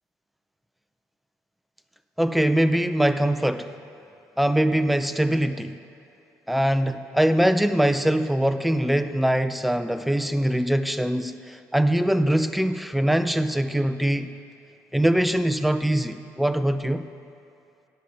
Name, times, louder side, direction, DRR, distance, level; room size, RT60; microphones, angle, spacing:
voice 1, 2.2-3.7 4.4-5.8 6.5-14.3 14.9-17.1, right 1 dB, ahead, 11 dB, 0.4 m, -22 dB
10.0 x 5.4 x 6.4 m, 2.7 s
hypercardioid pair, 60°, 8 cm